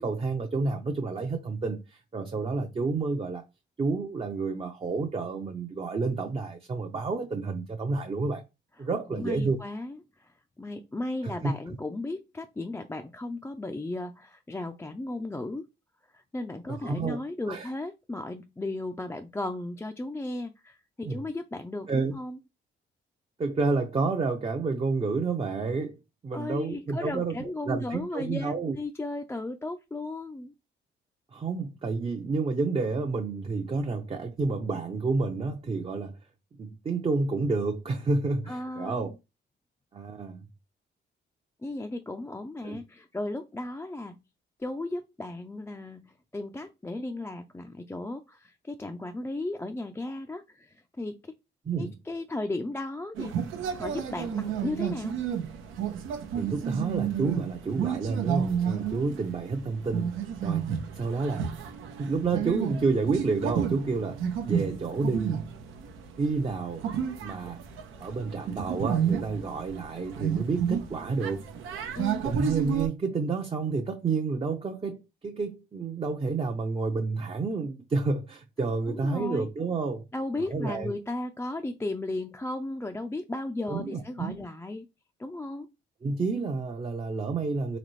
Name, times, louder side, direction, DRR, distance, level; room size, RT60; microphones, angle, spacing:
voice 1, 0.0-3.4 3.8-8.4 8.8-9.6 11.2-11.5 16.7-17.2 17.5-17.7 21.0-21.2 21.9-22.2 23.4-26.0 26.2-28.8 31.3-36.2 36.6-39.1 39.9-40.4 42.6-42.8 51.7-51.9 56.3-60.1 60.4-61.5 61.9-65.4 66.2-66.9 67.2-67.6 68.0-71.4 72.2-80.1 80.5-80.9 83.7-84.4 86.0-87.8, right 4 dB, 30° right, 0.6 m, -30 dB
voice 2, 9.1-15.7 16.1-22.4 26.3-30.5 38.5-39.0 41.6-44.2 44.6-51.3 51.8-53.4 53.8-55.2 59.1-59.2 72.0-72.2 78.9-79.5 80.1-84.9 85.2-85.7, left 2 dB, 10° left, 0.4 m, -35 dB
sound 1, 53.2-72.9, right 8 dB, 85° right, 0.8 m, -31 dB
4.1 x 2.9 x 3.2 m
cardioid pair, 90°, 20 cm